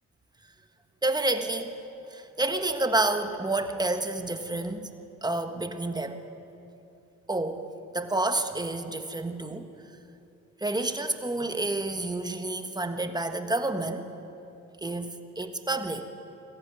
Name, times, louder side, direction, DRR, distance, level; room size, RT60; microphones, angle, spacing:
voice 1, 1.0-1.7 2.0-4.9 5.2-6.2 7.3-7.6 7.9-9.7 10.6-14.1 14.8-16.1, right 2 dB, 15° right, 7 dB, 1.4 m, -29 dB
20.5 x 14.5 x 9.5 m, 2.8 s
cardioid pair, 90°, 30 cm